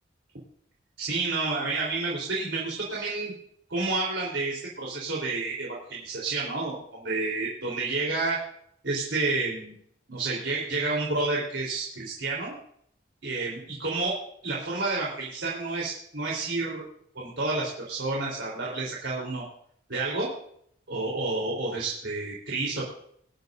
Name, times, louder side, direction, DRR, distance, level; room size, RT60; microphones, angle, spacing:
voice 1, 1.0-3.3 3.7-8.4 8.8-9.7 10.1-12.5 13.2-14.2 14.4-16.8 17.2-19.4 19.9-20.3 20.9-22.8, right 3 dB, 90° right, -4 dB, 3.8 m, -30 dB
23.0 x 11.5 x 2.7 m, 0.67 s
head